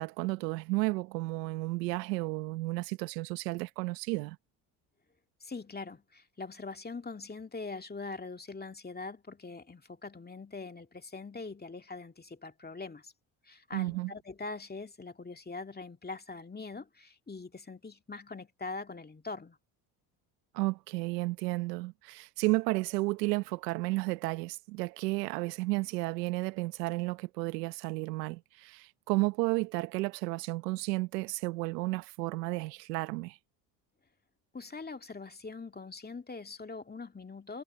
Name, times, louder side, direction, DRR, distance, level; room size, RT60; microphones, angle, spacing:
voice 1, 0.0-4.4 13.7-14.1 20.5-33.4, right 22 dB, 85° right, 1.3 m, -32 dB
voice 2, 5.4-13.1 13.4-19.6 34.5-37.6, left 3 dB, 20° left, 2.3 m, -42 dB
hypercardioid pair, 65°, 47 cm